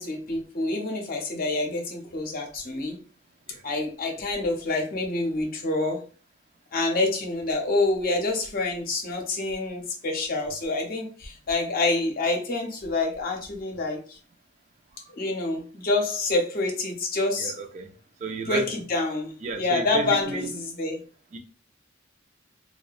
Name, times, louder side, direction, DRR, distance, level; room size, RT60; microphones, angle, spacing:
voice 1, 0.0-3.0 3.6-6.0 6.7-14.2 15.1-17.5 18.5-21.0, left 2 dB, 45° left, 2 dB, 0.6 m, -27 dB
voice 2, 17.4-17.9 18.2-18.7 19.4-20.5 21.3-21.4, right 4 dB, 35° right, 5 dB, 0.3 m, -32 dB
2.6 x 2.2 x 2.3 m, 0.38 s
head